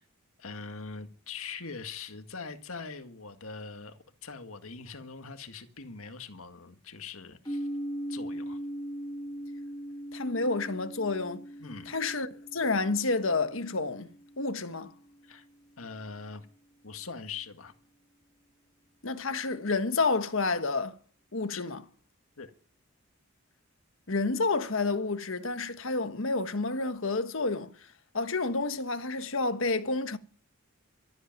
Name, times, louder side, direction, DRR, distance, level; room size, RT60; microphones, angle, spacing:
voice 1, 0.4-7.7 8.1-8.6 11.6-11.9 15.2-15.5 15.8-16.5 16.8-17.7 21.5-21.6 22.4-22.5, left 4 dB, 85° left, 1.9 m, -42 dB
sound 1, 7.4-15.3, equal, 20° left, 1.6 m, -40 dB
voice 2, 10.1-11.4 11.9-14.1 14.4-14.9 19.0-21.0 21.3-21.8 24.1-27.7 28.1-30.2, left 3 dB, 70° left, 1.4 m, -29 dB
13.5 x 11.0 x 9.2 m
head